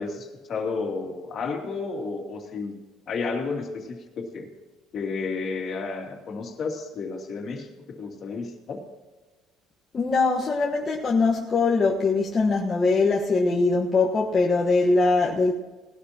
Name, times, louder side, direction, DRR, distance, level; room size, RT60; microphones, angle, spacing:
voice 1, 0.0-2.7 3.1-4.5 4.9-8.8, left 4 dB, 40° left, 2.6 m, -32 dB
voice 2, 9.9-15.5, left 3 dB, 25° left, 1.3 m, -22 dB
19.5 x 12.0 x 2.9 m
cardioid pair, 140°, 0 cm